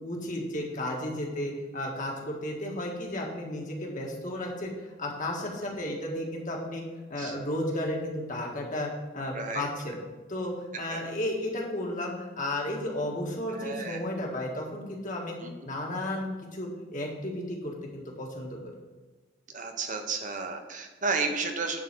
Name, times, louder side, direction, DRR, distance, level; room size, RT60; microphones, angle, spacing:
voice 1, 0.0-4.7 5.0-6.8 7.1-10.0 10.3-15.4 15.6-18.6, left 1 dB, 45° left, -1 dB, 1.7 m, -33 dB
voice 2, 9.3-9.7 10.9-11.0 13.5-14.0 15.4-15.5 19.5-21.8, right 4 dB, 45° right, 5 dB, 1.0 m, -32 dB
10.5 x 4.0 x 6.1 m, 1.3 s
head